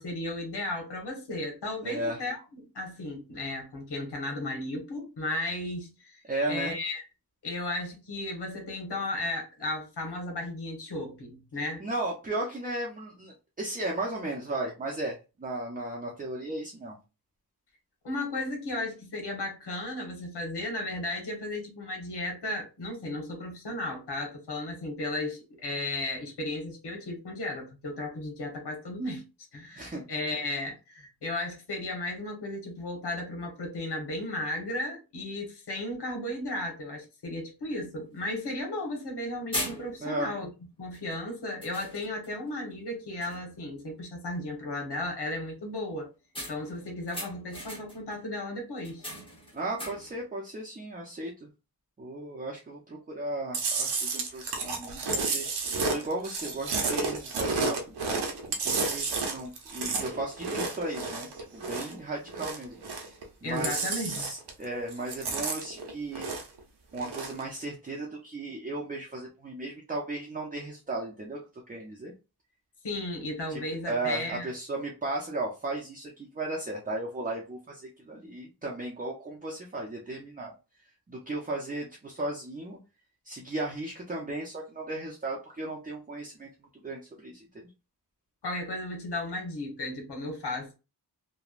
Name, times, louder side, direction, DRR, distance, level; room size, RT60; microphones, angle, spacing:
voice 1, 0.0-2.4 2.7-6.2 6.5-7.0 7.4-11.8 18.0-29.2 29.5-40.5 40.8-46.1 46.5-49.0 63.4-64.3 72.8-74.5 88.4-90.8, left 1 dB, 85° left, 1.2 m, -35 dB
voice 2, 1.8-2.2 6.2-6.7 11.8-17.0 29.8-30.0 40.0-40.3 49.5-51.5 52.0-55.5 55.8-58.0 58.6-62.8 63.4-66.3 66.9-72.1 73.5-80.5 81.1-82.8 83.3-86.5 86.8-87.5, right 2 dB, 20° right, 0.5 m, -35 dB
sound 1, 37.7-37.8 38.2-38.3 39.0-39.2 39.5-40.2 40.9-41.2 41.6-42.4 42.8-42.9 43.2-43.6 46.3-48.1 48.8-50.2, equal, 15° left, 1.0 m, -39 dB
Chewing mastication, 53.5-62.0 62.3-63.2 63.5-64.6 64.9-66.6 66.9-67.4, right 4 dB, 80° right, 0.8 m, -31 dB
3.0 x 2.2 x 2.4 m
wide cardioid pair, 145°, 39 cm